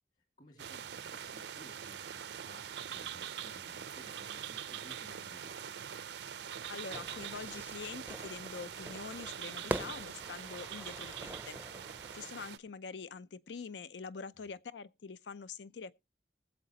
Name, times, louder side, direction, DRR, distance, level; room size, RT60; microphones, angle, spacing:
voice 1, 0.4-5.6, equal, 45° left, 2.1 m, -58 dB
sound 1, 0.6-12.6, right 8 dB, 75° right, 0.5 m, -44 dB
voice 2, 6.7-11.6 12.1-15.9, left 5 dB, 85° left, 0.5 m, -45 dB
Fire / Fireworks, 6.9-12.5, right 1 dB, 10° right, 0.5 m, -44 dB
20.5 x 7.4 x 2.8 m
head